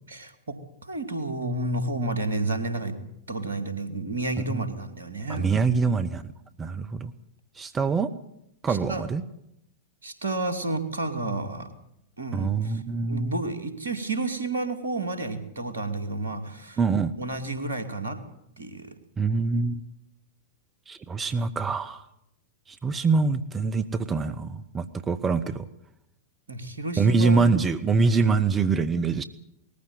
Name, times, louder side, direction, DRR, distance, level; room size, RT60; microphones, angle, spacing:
voice 1, 0.1-3.0 3.3-5.5 8.7-9.0 10.0-11.7 12.2-12.8 13.1-16.8 17.2-18.2 18.6-18.9 26.5-27.7, right 2 dB, 70° right, 9 dB, 2.5 m, -31 dB
voice 2, 5.3-6.2 6.6-7.1 7.6-8.1 8.6-9.2 12.3-13.3 16.8-17.1 19.2-19.8 20.9-22.0 22.7-25.7 27.0-29.2, right 4 dB, 20° right, 11 dB, 0.9 m, -24 dB
20.0 x 15.0 x 9.4 m, 0.79 s
figure-of-eight pair, 95°, 0 cm